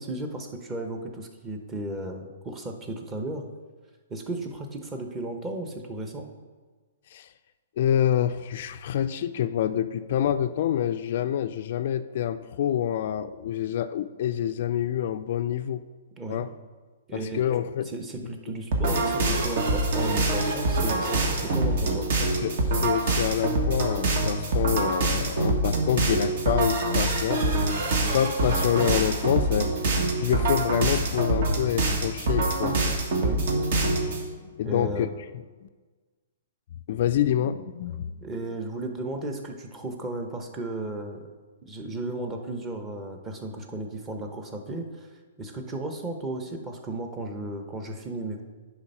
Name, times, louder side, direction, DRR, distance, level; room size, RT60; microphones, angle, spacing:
voice 1, 0.0-3.4 4.1-6.3 16.2-16.4 17.1-17.4 17.8-22.1 33.2-33.5 34.6-35.1 38.2-41.3 41.6-48.4, right 2 dB, 20° right, 4 dB, 0.9 m, -34 dB
voice 2, 7.8-15.8 16.3-16.5 17.1-17.9 18.2-18.3 22.2-29.7 30.2-32.8 34.6-35.1 35.6-35.7 36.9-38.2, left 10 dB, 55° left, 11 dB, 0.3 m, -27 dB
sound 1, 18.7-34.2, right 2 dB, 60° right, 1.4 m, -25 dB
9.8 x 3.5 x 5.4 m, 1.4 s
hypercardioid pair, 145°, 0 cm